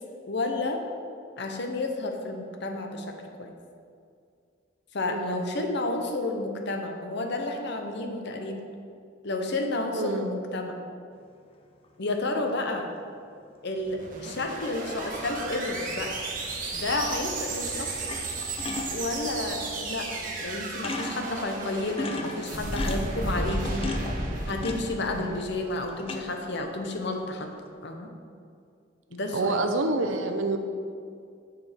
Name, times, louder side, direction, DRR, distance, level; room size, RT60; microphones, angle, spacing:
voice 1, 0.3-0.8 1.4-3.1 3.4-3.5 4.9-8.6 9.2-10.7 12.0-12.9 13.6-16.2 16.7-17.9 18.9-23.8 24.5-27.5 27.8-28.1 29.1-29.6, left 2 dB, 60° left, 4 dB, 0.9 m, -31 dB
voice 2, 5.1-5.5 9.9-10.4 25.1-25.4 29.3-30.6, right 2 dB, 85° right, 6 dB, 0.7 m, -28 dB
sound 1, 11.8-11.9 15.9-16.2 17.2-17.5 17.9-19.4 20.2-20.3 20.5-20.6 20.8-21.4 21.8-25.4 25.7-26.5 26.9-27.4, left 3 dB, 30° left, 0.6 m, -36 dB
sound 2, 13.8-26.1, right 2 dB, 45° right, 1.3 m, -34 dB
9.7 x 5.3 x 4.4 m, 2.4 s
head